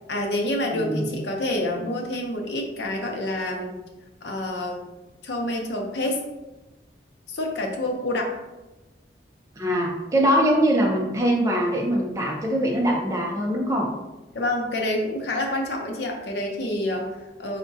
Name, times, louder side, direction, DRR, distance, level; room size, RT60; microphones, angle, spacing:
voice 1, 0.1-3.8 4.2-4.8 5.2-6.2 7.3-8.4 14.3-17.6, left 1 dB, 80° left, 1 dB, 0.6 m, -27 dB
voice 2, 0.7-1.0 9.6-13.9, equal, 20° right, -1 dB, 0.4 m, -22 dB
4.6 x 2.1 x 2.6 m, 1.1 s
head